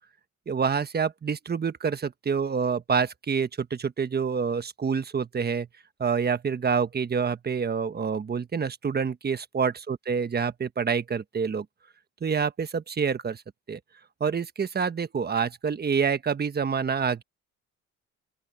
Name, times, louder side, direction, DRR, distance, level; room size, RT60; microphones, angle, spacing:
voice 1, 0.5-5.7 6.0-11.6 12.2-13.4 13.7-13.8 14.2-17.2, right 6 dB, 30° right, 1.3 m, -27 dB
open air
cardioid pair, 90°, 30 cm